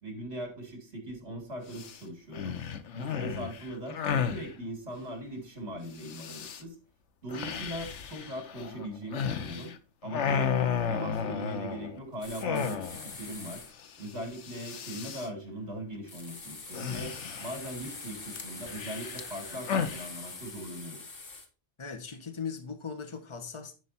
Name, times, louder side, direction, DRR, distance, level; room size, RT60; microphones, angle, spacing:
voice 1, 0.0-2.6 2.9-6.7 7.2-9.7 10.0-10.6 10.9-13.6 14.0-17.1 17.4-21.0, right 1 dB, 65° right, 3.1 m, -40 dB
sound 1, 1.7-2.0 2.3-4.5 6.0-6.6 7.3-9.8 10.0-12.0 12.4-13.1 13.4-13.5 13.8-14.1 14.3-15.3 16.7-17.7 18.3-20.1, left 7 dB, 75° left, 1.1 m, -33 dB
sound 2, 12.2-13.7 16.1-21.5, left 3 dB, 50° left, 1.6 m, -44 dB
voice 2, 21.8-23.7, left 6 dB, 25° left, 1.2 m, -39 dB
10.5 x 5.2 x 4.2 m
omnidirectional pair, 1.2 m